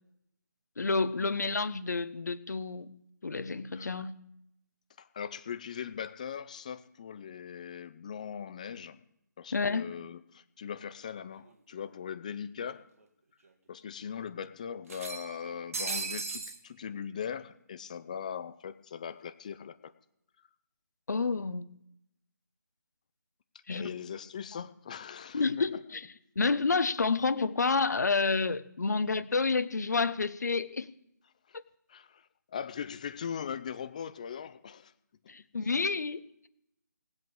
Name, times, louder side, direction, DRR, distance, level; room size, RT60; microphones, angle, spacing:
voice 1, 0.8-2.9 3.2-4.1 9.5-9.8 21.1-21.6 23.7-23.9 24.5-24.6 25.3-26.0 26.3-30.9 31.5-31.6 35.3-36.2, left 4 dB, 60° left, 13 dB, 1.1 m, -29 dB
voice 2, 5.0-9.0 9.4-12.8 13.7-19.9 23.7-25.4 25.7-25.8 31.9-32.2 32.5-34.9 35.2-35.3, left 7 dB, 25° left, 12 dB, 0.5 m, -40 dB
sound 1, 11.5-11.6 11.9-12.0 13.0-13.1 13.5-13.6 14.9-16.6, right 4 dB, 45° right, 1.9 m, -37 dB
18.5 x 8.1 x 7.1 m, 0.78 s
figure-of-eight pair, 160°, 10 cm